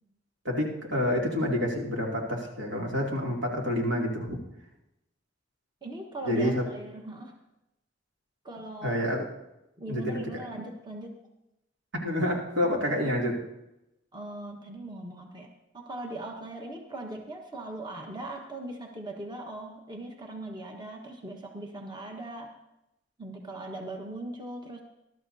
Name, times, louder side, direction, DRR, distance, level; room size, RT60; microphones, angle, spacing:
voice 1, 0.4-4.4 6.2-6.6 8.8-9.2 9.9-10.4 11.9-13.4, equal, 85° right, -2 dB, 2.8 m, -28 dB
voice 2, 5.8-7.3 8.4-9.0 9.8-11.2 14.1-15.5 15.7-22.5 23.2-24.8, right 1 dB, 25° right, 1 dB, 1.3 m, -39 dB
21.0 x 12.5 x 2.8 m, 0.89 s
head